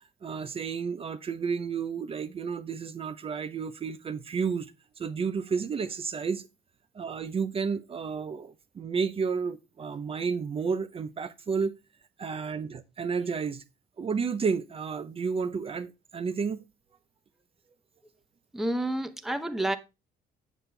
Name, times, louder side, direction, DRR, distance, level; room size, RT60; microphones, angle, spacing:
voice 1, 0.2-4.7 5.0-6.5 6.9-11.7 12.2-13.6 14.0-16.6, right 5 dB, 35° right, 0.8 m, -31 dB
voice 2, 18.5-19.8, right 1 dB, ahead, 0.8 m, -29 dB
7.9 x 7.7 x 3.4 m
cardioid pair, 110°, 17 cm